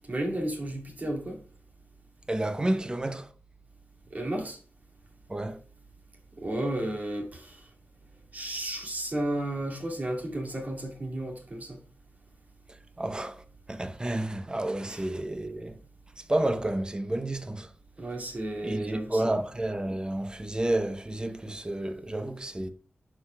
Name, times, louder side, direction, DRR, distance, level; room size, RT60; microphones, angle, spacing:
voice 1, 0.1-1.4 4.1-4.6 6.4-7.6 8.3-11.8 14.9-15.0 18.0-19.3, right 1 dB, 45° right, 2.4 m, -33 dB
voice 2, 2.3-3.3 5.3-5.6 13.0-15.8 16.2-17.7 18.6-22.7, right 1 dB, 20° right, 0.8 m, -30 dB
11.5 x 4.9 x 2.3 m
wide cardioid pair, 80°, 4 cm